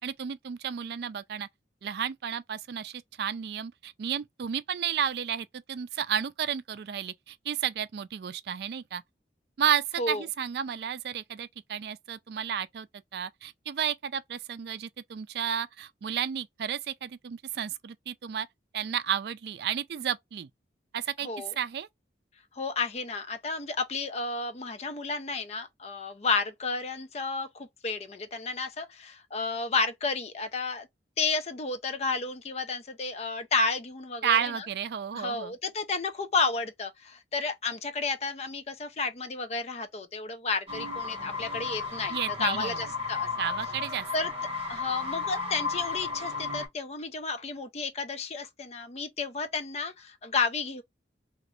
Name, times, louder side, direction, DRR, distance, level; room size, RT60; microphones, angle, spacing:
voice 1, 0.0-1.5 1.8-9.0 9.6-12.9 13.1-18.5 18.7-20.5 20.9-21.3 21.6-21.9 34.2-35.5 42.1-42.9 43.4-44.1, right 8 dB, 60° right, 0.3 m, -32 dB
voice 2, 21.2-21.5 22.6-30.9 31.2-34.7 35.1-43.3 44.1-44.3 44.7-50.8, left 4 dB, 35° left, 0.5 m, -32 dB
sound 1, 40.7-46.7, left 4 dB, 35° right, 1.3 m, -34 dB
2.9 x 2.4 x 3.0 m
head